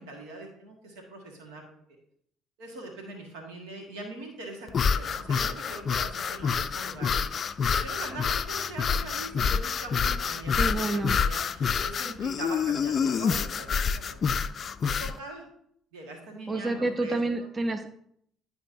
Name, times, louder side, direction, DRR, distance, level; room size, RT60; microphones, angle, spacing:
voice 1, 0.0-1.6 2.6-14.2 14.8-15.4 15.9-17.2, right 2 dB, 85° right, 1 dB, 1.6 m, -42 dB
sound 1, 4.7-15.2, left 6 dB, 50° left, 0.3 m, -27 dB
voice 2, 10.6-11.2 16.5-17.9, right 2 dB, 25° right, 8 dB, 0.6 m, -29 dB
11.0 x 4.6 x 2.6 m, 0.69 s
hypercardioid pair, 60°, 0 cm